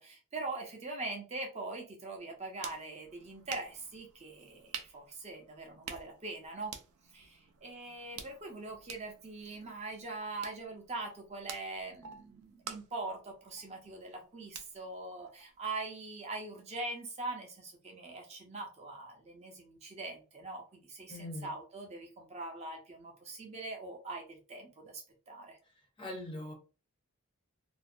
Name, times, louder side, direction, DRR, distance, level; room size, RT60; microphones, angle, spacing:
voice 1, 0.0-6.7 7.1-25.6, right 2 dB, 30° right, 2 dB, 0.5 m, -42 dB
sound 1, 2.2-15.9, right 7 dB, 85° right, 0.4 m, -50 dB
voice 2, 21.1-21.5 25.7-26.5, left 1 dB, 20° left, 2 dB, 0.5 m, -42 dB
2.4 x 2.0 x 2.5 m, 0.34 s
head